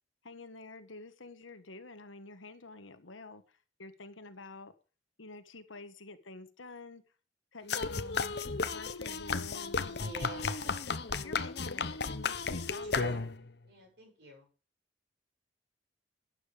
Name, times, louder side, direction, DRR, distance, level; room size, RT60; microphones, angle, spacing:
voice 1, 0.2-4.7 5.2-7.0 7.5-10.8 11.2-13.3, left 3 dB, 90° left, 10 dB, 1.4 m, -49 dB
sound 1, 7.7-13.5, left 4 dB, 55° left, 0.9 m, -34 dB
voice 2, 9.8-10.7 12.9-13.3 13.6-14.5, right 1 dB, 60° right, 0 dB, 7.6 m, -46 dB
12.0 x 9.3 x 5.0 m, 0.36 s
head